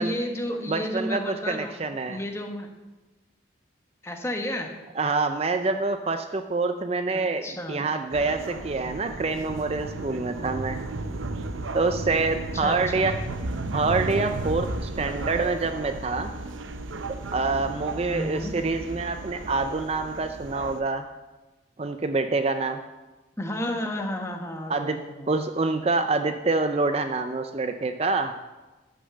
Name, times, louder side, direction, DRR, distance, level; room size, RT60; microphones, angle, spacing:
voice 1, 0.0-2.7 4.0-4.7 7.1-7.9 12.5-13.1 18.1-18.5 23.4-25.3, left 1 dB, 15° left, 4 dB, 1.2 m, -32 dB
voice 2, 0.7-2.2 5.0-10.8 11.7-13.1 13.7-16.3 17.1-21.0 21.8-22.8 24.7-25.0 25.3-28.3, right 3 dB, 30° right, 8 dB, 0.5 m, -26 dB
sound 1, 8.1-20.8, right 2 dB, 90° right, 0.8 m, -34 dB
13.0 x 6.8 x 7.7 m, 1.2 s
head